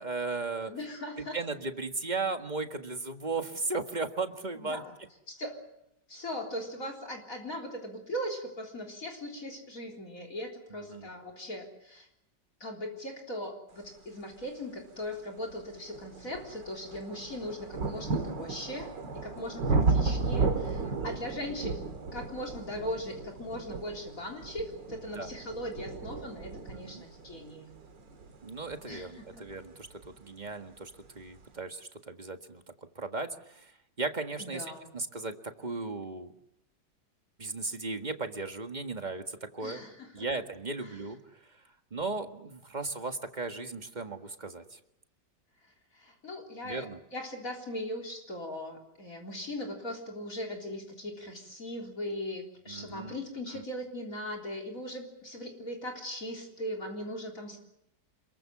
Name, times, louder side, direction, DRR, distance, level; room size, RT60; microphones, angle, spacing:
voice 1, 0.0-0.7 1.2-4.8 10.7-11.1 20.8-21.2 25.2-25.3 26.7-27.1 28.4-32.6 33.0-33.7 34.0-34.6 34.9-36.3 37.4-39.8 40.1-41.2 41.5-41.6 41.9-44.8 46.6-47.0 52.7-53.2 53.5-53.6, right 3 dB, 25° right, 6 dB, 1.8 m, -36 dB
voice 2, 0.7-1.4 4.6-4.9 5.4-5.6 6.1-12.1 12.6-21.9 22.1-27.7 28.9-29.4 34.4-34.9 39.6-40.3 40.8-41.1 45.9-57.6, left 1 dB, 50° left, 4 dB, 4.1 m, -39 dB
sound 1, 14.8-14.9 15.5-30.2 31.1-31.2, right 4 dB, 85° right, 2.9 m, -34 dB
27.5 x 23.0 x 7.4 m, 0.82 s
omnidirectional pair, 1.9 m